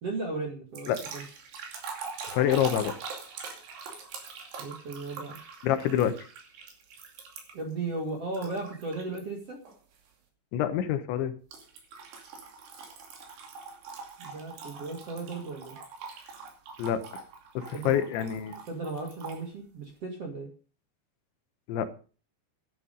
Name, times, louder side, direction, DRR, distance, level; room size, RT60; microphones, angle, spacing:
voice 1, 0.0-1.2 4.6-5.4 7.5-9.6 14.2-15.8 17.7-17.9 18.7-20.5, right 3 dB, 45° right, 2 dB, 2.1 m, -36 dB
sound 1, 0.7-7.7 8.3-9.2 9.7-10.0 11.5-19.4, right 5 dB, 65° right, 4.5 m, -43 dB
voice 2, 2.3-2.9 5.6-6.2 10.5-11.3 16.8-17.2 17.5-18.6 21.7-21.9, left 10 dB, 80° left, 10 dB, 3.3 m, -27 dB
11.5 x 11.0 x 5.3 m, 0.38 s
omnidirectional pair, 5.4 m